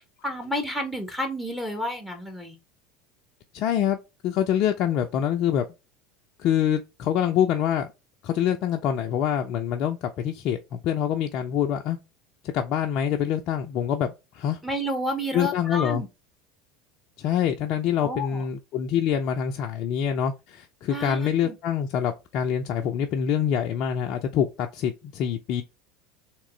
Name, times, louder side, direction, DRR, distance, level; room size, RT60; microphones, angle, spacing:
voice 1, 0.2-2.6 14.6-16.1 18.0-18.4 20.9-21.5, equal, ahead, 1.0 m, -30 dB
voice 2, 3.5-4.0 4.2-5.7 6.4-7.9 8.2-12.0 12.5-14.6 15.3-16.0 17.2-25.6, left 9 dB, 50° left, 0.5 m, -25 dB
3.7 x 3.0 x 3.2 m
hypercardioid pair, 75°, 0 cm